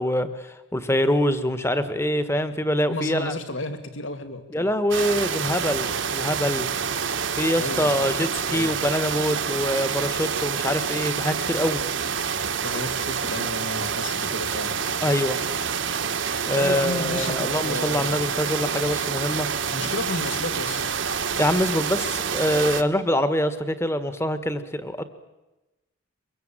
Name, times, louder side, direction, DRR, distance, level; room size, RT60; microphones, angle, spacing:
voice 1, 0.0-3.3 4.5-6.7 7.4-11.8 15.0-15.4 16.4-19.5 21.4-25.0, equal, 15° left, 11 dB, 1.6 m, -24 dB
voice 2, 2.9-4.7 7.6-8.0 8.5-8.7 12.6-14.8 16.5-18.2 18.6-18.8 19.7-20.9, left 2 dB, 65° left, 8 dB, 2.6 m, -32 dB
sound 1, 4.9-22.8, right 6 dB, 65° right, 1.4 m, -27 dB
24.0 x 21.5 x 9.1 m, 1.1 s
head